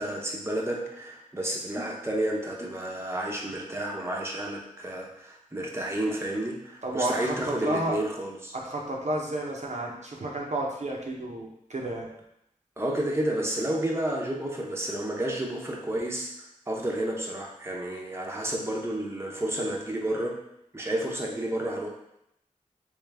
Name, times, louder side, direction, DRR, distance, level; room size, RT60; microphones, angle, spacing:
voice 1, 0.0-8.5 9.9-10.0 12.8-16.3 16.7-20.4 20.7-21.9, right 1 dB, 15° right, -2 dB, 0.7 m, -31 dB
voice 2, 6.8-8.0 8.5-12.1, right 1 dB, 55° right, -2 dB, 0.7 m, -31 dB
3.4 x 3.1 x 3.4 m, 0.80 s
wide cardioid pair, 50°, 14 cm